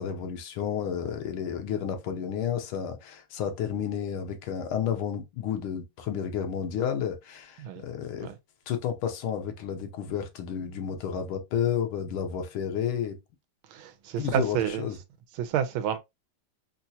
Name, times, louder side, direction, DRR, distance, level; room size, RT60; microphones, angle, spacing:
voice 1, 0.0-8.3 8.7-13.2 14.2-15.0, left 8 dB, 85° left, 1.6 m, -31 dB
voice 2, 13.7-14.9 15.4-16.0, right 9 dB, 85° right, 1.4 m, -29 dB
4.3 x 2.3 x 2.7 m
omnidirectional pair, 2.2 m